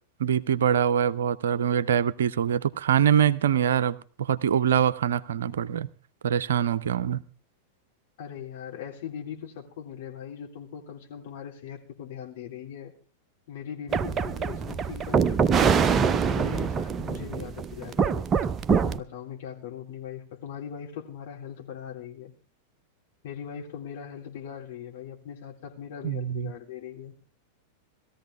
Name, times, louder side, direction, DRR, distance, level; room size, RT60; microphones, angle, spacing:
voice 1, 0.2-5.9 6.2-7.2 26.0-26.5, right 9 dB, 65° right, 0.6 m, -24 dB
voice 2, 8.2-12.9 13.5-18.3 18.8-22.3 23.2-27.1, left 8 dB, 55° left, 3.3 m, -40 dB
sound 1, 13.9-19.0, right 6 dB, 25° right, 0.6 m, -24 dB
19.5 x 14.0 x 3.5 m
figure-of-eight pair, 90°, 0 cm